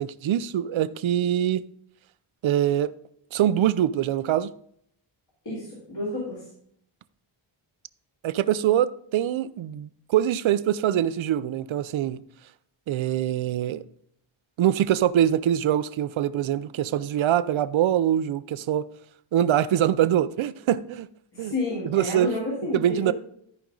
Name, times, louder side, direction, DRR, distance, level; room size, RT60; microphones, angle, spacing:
voice 1, 0.0-1.6 2.4-2.9 3.3-4.5 8.2-12.2 12.9-13.8 14.6-18.9 19.3-21.1 21.4-21.5 21.9-22.3 22.7-23.1, right 11 dB, 75° right, 0.6 m, -24 dB
voice 2, 5.5-6.4 21.3-23.1, left 2 dB, 55° left, 3.4 m, -30 dB
13.5 x 5.2 x 3.8 m
wide cardioid pair, 130°, 47 cm